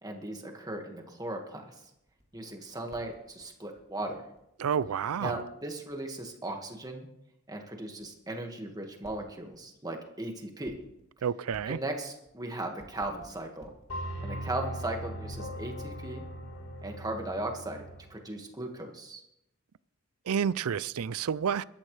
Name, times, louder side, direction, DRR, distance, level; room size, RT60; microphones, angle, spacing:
voice 1, 0.0-1.6 2.3-4.2 5.2-7.1 7.5-10.8 11.7-13.7 14.2-16.2 16.8-17.8 18.1-19.2, right 1 dB, 20° right, 1.8 m, -37 dB
sound 1, 1.8-4.8 5.1-5.2 5.3-6.6 6.9-7.0 7.3-7.6 8.0-8.1 8.3-8.6 8.9-9.7 10.5-11.2 11.5-14.2 14.7-14.9 15.3-18.1, equal, 30° left, 2.9 m, -56 dB
voice 2, 4.6-5.4 11.2-11.8 20.3-21.6, right 7 dB, 85° right, 0.4 m, -29 dB
sound 2, 13.9-18.1, equal, 65° left, 4.2 m, -39 dB
23.5 x 13.0 x 3.3 m
head